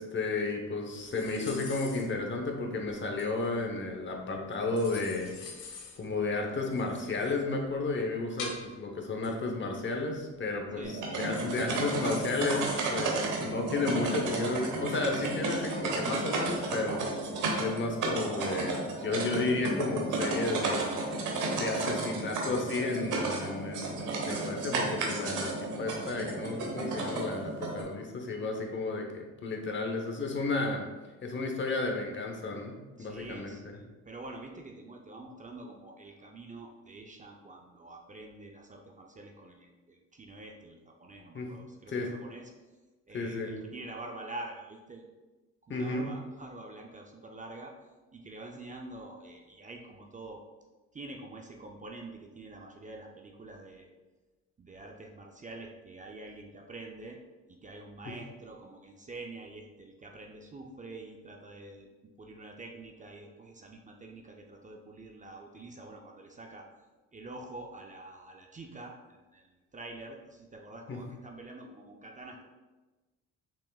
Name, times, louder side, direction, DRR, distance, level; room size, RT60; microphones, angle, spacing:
voice 1, 0.0-5.4 6.0-17.0 17.6-20.9 21.6-30.8 31.2-33.7 41.3-41.5 41.9-42.1 43.1-43.6 45.7-46.0 58.1-58.2 70.9-71.0, left 3 dB, 40° left, 2 dB, 0.9 m, -33 dB
sound 1, 0.9-18.0, left 4 dB, 75° left, 1.0 m, -48 dB
sound 2, 10.8-27.8, right 3 dB, 90° right, 0.9 m, -33 dB
voice 2, 33.0-42.5 43.1-45.0 45.6-47.7 48.1-50.4 50.9-53.9 54.6-57.2 57.5-61.9 62.2-66.7 67.1-72.5, right 2 dB, 25° right, 2 dB, 0.5 m, -46 dB
5.9 x 3.6 x 2.3 m, 1.2 s
cardioid pair, 90°, 30 cm